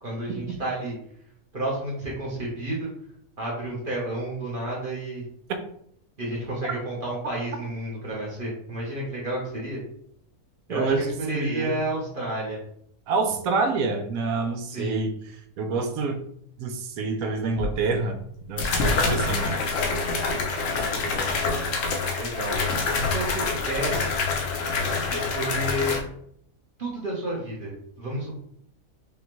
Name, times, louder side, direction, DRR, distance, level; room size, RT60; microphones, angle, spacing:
voice 1, 0.0-0.9 1.5-2.9 3.4-5.2 6.2-9.8 10.7-12.6 14.7-15.0 20.6-21.4 22.1-22.6 22.9-24.2 25.1-25.9 26.8-28.4, right 1 dB, 45° right, -5 dB, 1.0 m, -31 dB
voice 2, 10.7-11.8 13.1-16.2 16.6-18.2 18.5-19.5, right 4 dB, 80° right, 7 dB, 1.0 m, -27 dB
sound 1, 17.6-17.7 18.6-26.0, left 3 dB, 65° left, 1.0 m, -26 dB
5.0 x 2.3 x 3.0 m, 0.69 s
omnidirectional pair, 1.5 m